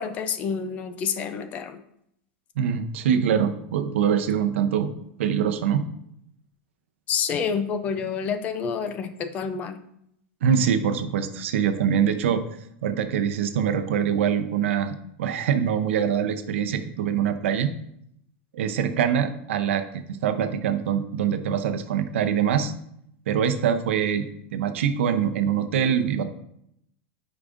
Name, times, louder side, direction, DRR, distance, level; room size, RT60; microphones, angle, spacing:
voice 1, 0.0-1.8 7.1-9.8, left 6 dB, 20° left, 10 dB, 0.4 m, -28 dB
voice 2, 2.6-4.9 5.2-5.9 10.4-12.5 12.8-17.7 18.5-22.7 23.3-24.2 24.5-26.2, right 8 dB, 85° right, 9 dB, 0.6 m, -24 dB
8.4 x 4.9 x 2.5 m, 0.73 s
supercardioid pair, 175°, 7 cm